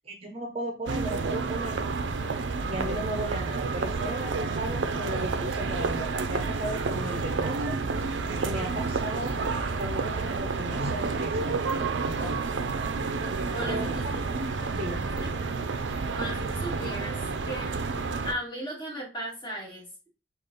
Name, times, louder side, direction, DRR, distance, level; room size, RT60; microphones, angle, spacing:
voice 1, 0.1-1.8 2.7-7.7 8.4-9.4 9.7-12.7 13.7-14.2 14.7-15.1, right 1 dB, 35° right, 2 dB, 0.7 m, -36 dB
sound 1, 0.9-18.3, right 4 dB, 80° right, 0.5 m, -30 dB
voice 2, 13.5-14.0 15.2-15.4 16.1-17.7 18.2-20.1, equal, 25° left, -4 dB, 2.1 m, -36 dB
4.9 x 2.4 x 3.8 m, 0.30 s
head